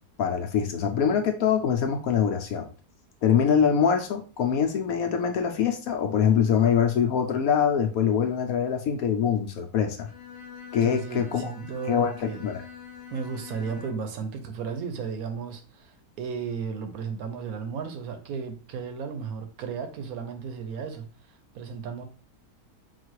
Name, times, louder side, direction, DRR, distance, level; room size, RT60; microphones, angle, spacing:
voice 1, 0.2-2.7 3.2-10.1 10.7-11.5 11.9-12.6, left 7 dB, 65° left, 1.0 m, -24 dB
Bowed string instrument, 10.0-14.2, left 7 dB, 50° left, 0.6 m, -44 dB
voice 2, 10.8-12.4 13.1-22.0, right 6 dB, 70° right, 1.0 m, -34 dB
4.0 x 2.3 x 4.5 m
omnidirectional pair, 1.7 m